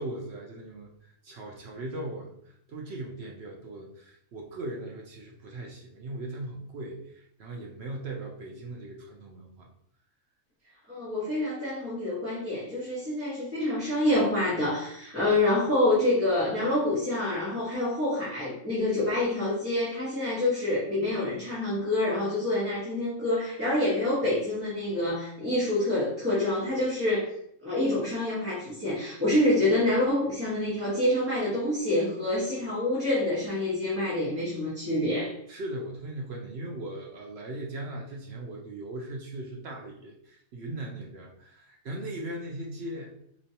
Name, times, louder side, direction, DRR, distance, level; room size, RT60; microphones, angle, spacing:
voice 1, 0.0-9.7 35.5-43.1, right 1 dB, 60° right, 0 dB, 0.7 m, -39 dB
voice 2, 10.9-27.3 27.6-35.3, left 1 dB, 10° right, -11 dB, 1.2 m, -27 dB
4.2 x 3.0 x 2.8 m, 0.72 s
omnidirectional pair, 1.5 m